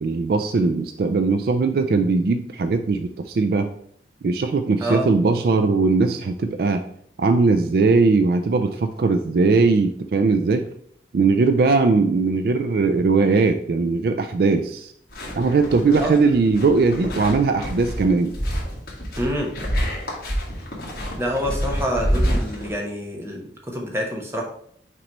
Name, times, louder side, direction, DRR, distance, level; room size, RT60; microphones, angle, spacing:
voice 1, 0.0-3.7 4.2-6.8 7.2-10.7 11.1-14.9 15.3-18.3, right 4 dB, 55° right, 8 dB, 0.3 m, -19 dB
sound 1, 15.1-22.7, equal, 55° left, 1.8 m, -27 dB
voice 2, 19.2-19.5 21.2-24.4, equal, 15° right, 0 dB, 1.0 m, -27 dB
5.9 x 3.1 x 5.2 m, 0.66 s
head